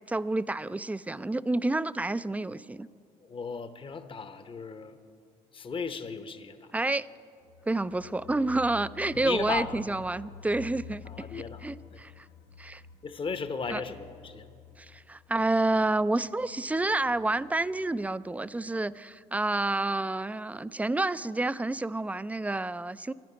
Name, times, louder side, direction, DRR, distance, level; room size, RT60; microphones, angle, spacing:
voice 1, 0.1-2.9 6.7-7.1 7.7-12.3 12.6-12.8 13.7-13.8 14.8-23.1, right 2 dB, 10° right, 16 dB, 0.4 m, -29 dB
voice 2, 3.2-5.0 5.5-6.7 9.1-9.8 11.0-12.0 13.0-14.5, left 5 dB, 30° left, 10 dB, 0.9 m, -36 dB
sound 1, 7.4-18.1 18.4-18.5 18.9-19.0, left 8 dB, 65° left, 0.8 m, -50 dB
11.0 x 10.5 x 9.8 m, 2.3 s
supercardioid pair, 70°, 16 cm